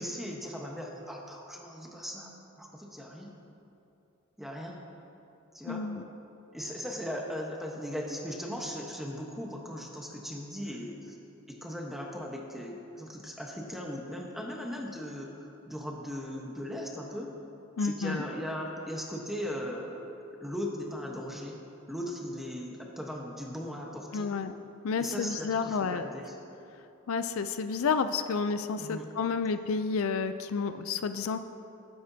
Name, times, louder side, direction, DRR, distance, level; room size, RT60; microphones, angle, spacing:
voice 1, 0.0-2.3 2.6-3.4 4.4-4.8 5.5-5.9 6.5-11.2 11.5-17.3 17.8-20.1 20.4-21.6 21.9-24.3 25.0-26.3 28.8-29.1, equal, ahead, -1 dB, 1.0 m, -38 dB
voice 2, 5.7-6.0 17.8-18.2 24.1-24.5 24.8-26.0 27.1-31.4, left 5 dB, 70° left, 10 dB, 0.4 m, -30 dB
18.5 x 9.4 x 2.8 m, 2.9 s
head